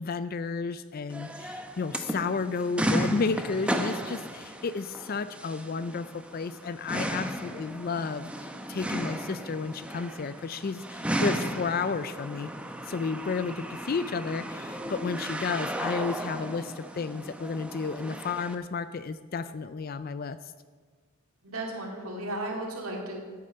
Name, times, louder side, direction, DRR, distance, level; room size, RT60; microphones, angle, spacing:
voice 1, 0.0-12.5 12.8-20.5, left 4 dB, 45° left, 13 dB, 0.4 m, -32 dB
sound 1, 1.1-18.5, right 1 dB, 5° right, 0.7 m, -35 dB
voice 2, 21.4-23.2, right 1 dB, 90° right, -1 dB, 2.4 m, -34 dB
14.5 x 8.6 x 5.6 m, 1.6 s
head